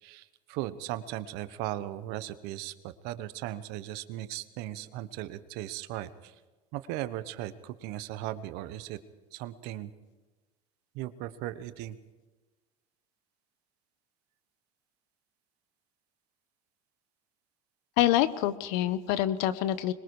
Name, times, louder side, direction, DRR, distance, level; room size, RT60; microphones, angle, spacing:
voice 1, 0.0-6.3 6.7-9.0 9.3-9.9 10.9-12.0, right 14 dB, 65° right, 13 dB, 1.2 m, -37 dB
voice 2, 18.0-19.9, left 13 dB, 70° left, 15 dB, 1.2 m, -26 dB
25.5 x 21.5 x 4.9 m, 1.2 s
hypercardioid pair, 90°, 18 cm